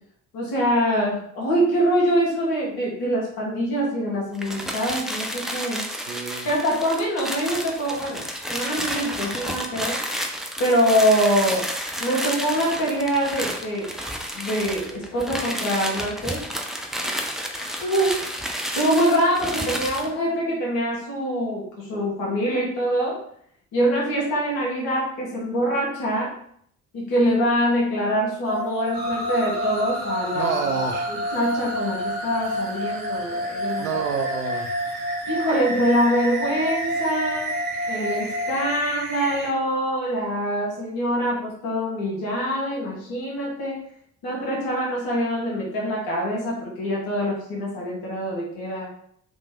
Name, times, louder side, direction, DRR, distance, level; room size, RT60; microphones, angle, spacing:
voice 1, 0.3-5.8 6.4-10.0 10.6-11.7 12.0-13.9 14.3-16.4 17.5-18.2 18.7-23.2 23.7-26.3 26.9-30.5 31.3-33.8 35.3-37.5 37.9-43.8 44.2-48.9, equal, 60° left, -3 dB, 1.7 m, -24 dB
sound 1, 4.3-20.1, equal, ahead, 0.5 m, -31 dB
voice 2, 5.9-6.5 30.3-31.2 33.8-34.8, right 5 dB, 80° right, 4 dB, 0.6 m, -28 dB
sound 2, 28.4-38.7, equal, 40° right, 1.4 m, -30 dB
sound 3, 28.9-39.5, right 2 dB, 60° right, 1.4 m, -34 dB
3.4 x 3.2 x 3.7 m, 0.65 s
figure-of-eight pair, 45°, 41 cm